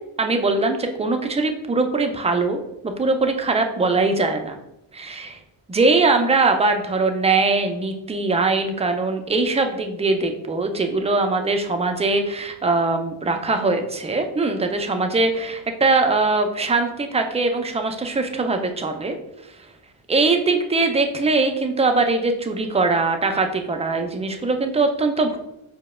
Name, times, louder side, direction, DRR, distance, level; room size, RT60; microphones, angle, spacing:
voice 1, 0.2-2.6 3.0-4.6 4.9-5.4 5.7-19.1 20.1-25.4, right 3 dB, 15° right, 5 dB, 0.4 m, -21 dB
4.5 x 2.1 x 2.3 m, 0.87 s
supercardioid pair, 45°, 49 cm